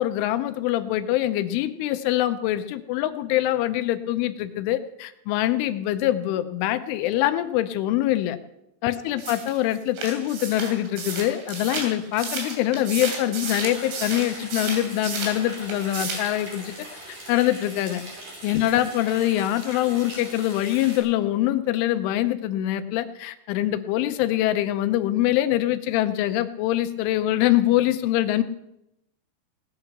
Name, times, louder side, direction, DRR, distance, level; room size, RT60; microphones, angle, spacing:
voice 1, 0.0-8.4 8.8-16.8 17.1-18.0 18.4-28.4, left 14 dB, 85° left, 10 dB, 3.1 m, -24 dB
sound 1, 9.2-15.4 15.7-16.3, right 4 dB, 70° right, 5.1 m, -33 dB
sound 2, 13.6-21.0, right 1 dB, 35° right, 6.0 m, -40 dB
17.5 x 10.0 x 5.9 m, 0.85 s
omnidirectional pair, 5.5 m